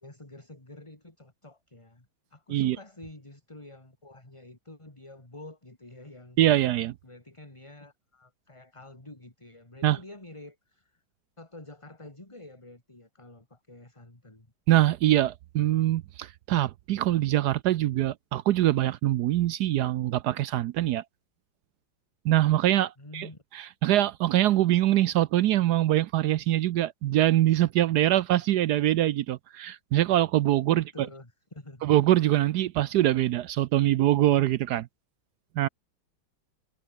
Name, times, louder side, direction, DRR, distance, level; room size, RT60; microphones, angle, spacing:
voice 1, 0.0-6.6 7.0-11.0 11.4-14.5 23.0-23.4 30.7-31.9, left 2 dB, 15° left, 3.0 m, -48 dB
voice 2, 6.4-6.9 9.8-10.0 14.7-21.0 22.2-23.3 23.5-31.1 31.8-34.9 35.6-35.7, right 14 dB, 70° right, 1.0 m, -24 dB
omnidirectional pair, 2.2 m